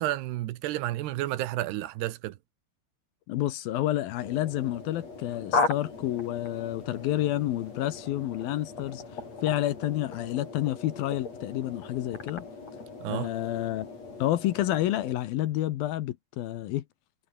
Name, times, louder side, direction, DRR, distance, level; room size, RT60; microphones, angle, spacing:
voice 1, 0.0-2.4 13.0-13.3, right 15 dB, 80° right, 3.1 m, -31 dB
voice 2, 3.3-9.0 9.4-12.5 13.1-13.9 14.2-16.8, left 14 dB, 70° left, 2.7 m, -29 dB
sound 1, 4.2-15.2, left 4 dB, 40° left, 6.8 m, -37 dB
omnidirectional pair, 4.7 m